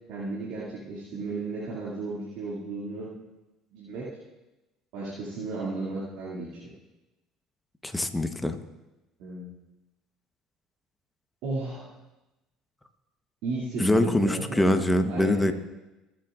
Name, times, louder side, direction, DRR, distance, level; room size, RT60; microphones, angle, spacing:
voice 1, 0.1-3.1 3.7-4.1 4.9-6.7 9.2-9.5 11.4-11.9 13.4-15.5, right 3 dB, 75° right, -8 dB, 2.4 m, -34 dB
voice 2, 7.8-8.5 13.8-15.5, left 1 dB, 10° left, 8 dB, 1.0 m, -24 dB
21.5 x 7.6 x 2.5 m, 1.0 s
hypercardioid pair, 75°, 0 cm